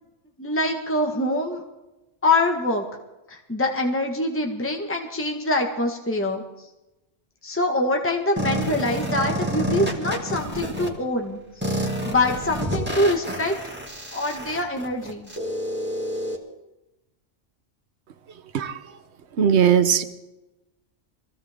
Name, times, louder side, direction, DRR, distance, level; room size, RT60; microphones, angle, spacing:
voice 1, 0.4-1.6 2.2-2.8 3.3-6.4 7.4-13.5 14.1-15.3, left 2 dB, 10° left, 2 dB, 1.5 m, -24 dB
sound 1, 8.4-10.9 11.6-16.4, equal, 10° right, 2.4 m, -28 dB
voice 2, 19.4-20.0, right 8 dB, 65° right, 10 dB, 1.2 m, -18 dB
23.5 x 16.0 x 3.7 m, 0.98 s
omnidirectional pair, 1.3 m